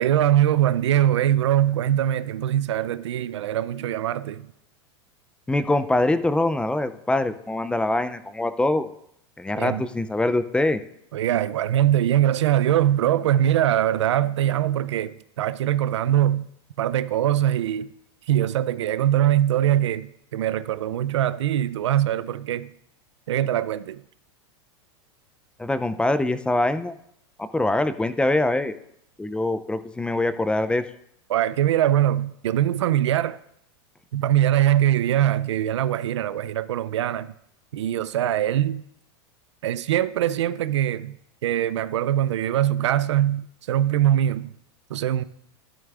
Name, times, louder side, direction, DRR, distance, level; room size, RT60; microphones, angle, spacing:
voice 1, 0.0-4.5 9.6-9.8 11.1-16.5 16.8-17.9 18.3-22.7 23.3-24.0 31.3-33.4 34.1-37.3 37.7-38.8 39.6-41.2 41.4-44.5 44.9-45.2, right 12 dB, 85° right, 0.4 m, -22 dB
voice 2, 5.5-8.9 9.4-10.8 25.6-26.9 27.4-28.7 29.2-30.9, left 2 dB, 5° left, 0.3 m, -23 dB
12.0 x 10.5 x 2.4 m
hypercardioid pair, 115°, 14 cm